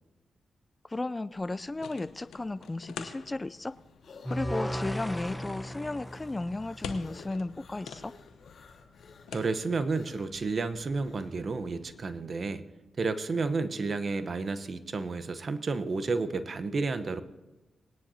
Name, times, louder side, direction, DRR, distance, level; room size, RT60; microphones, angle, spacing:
voice 1, 0.8-3.7 4.3-8.1, left 2 dB, 25° left, 16 dB, 0.3 m, -34 dB
sound 1, 1.3-12.2, left 6 dB, 90° left, 0.9 m, -48 dB
sound 2, 3.2-11.4, left 4 dB, 70° left, 3.4 m, -56 dB
sound 3, 4.2-7.4, equal, 5° left, 1.1 m, -36 dB
voice 2, 9.3-12.7 13.0-17.2, right 3 dB, 55° right, 11 dB, 0.9 m, -31 dB
20.5 x 10.0 x 2.8 m, 1.1 s
cardioid pair, 55°, 0 cm